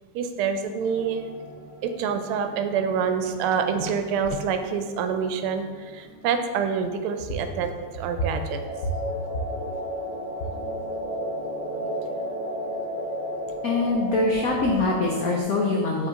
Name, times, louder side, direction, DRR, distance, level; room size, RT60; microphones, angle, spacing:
voice 1, 0.1-1.3 1.8-8.6, right 6 dB, 85° right, 7 dB, 1.4 m, -27 dB
sound 1, 0.8-15.4, equal, 60° right, 1.4 m, -35 dB
voice 2, 13.6-16.1, left 2 dB, 90° left, -1 dB, 0.7 m, -23 dB
5.1 x 4.1 x 4.9 m, 1.6 s
omnidirectional pair, 2.3 m